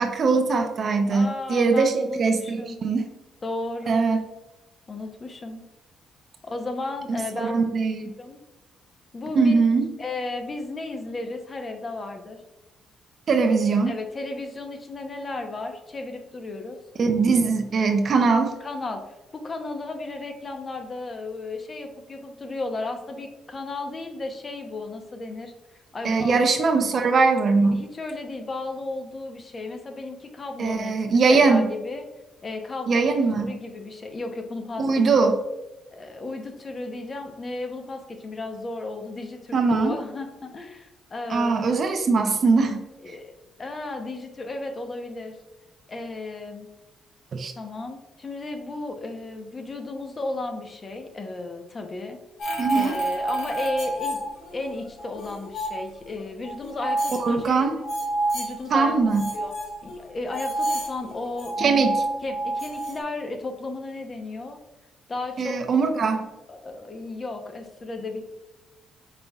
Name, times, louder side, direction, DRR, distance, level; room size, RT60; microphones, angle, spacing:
voice 1, 0.0-3.1 3.9-4.2 7.1-8.1 9.3-9.9 13.3-13.9 17.0-18.5 26.0-27.8 30.6-31.7 32.9-33.5 34.8-35.4 39.5-39.9 41.3-42.8 43.1-43.2 47.3-47.5 52.6-53.0 57.2-57.8 58.7-59.2 61.6-62.0 65.4-66.3, right 4 dB, 50° right, 5 dB, 0.6 m, -21 dB
voice 2, 1.1-2.8 3.4-4.1 4.9-5.6 6.4-7.5 8.2-8.4 9.1-9.6 10.0-12.4 13.9-16.8 18.6-25.5 25.9-26.4 27.7-30.9 31.3-32.0 32.4-33.2 33.5-34.9 35.9-41.7 43.0-43.3 43.6-45.4 45.9-46.7 47.6-52.2 52.7-54.2 54.5-57.8 58.3-58.9 59.3-59.5 59.8-61.9 62.2-64.6 65.1-65.6 66.5-68.3, left 2 dB, 35° left, 5 dB, 0.8 m, -34 dB
sound 1, 52.4-54.7 55.0-55.9 56.4-58.5 59.0-63.0, right 2 dB, 75° left, 1.4 m, -29 dB
5.4 x 4.1 x 2.3 m, 1.0 s
cardioid pair, 90°, 0 cm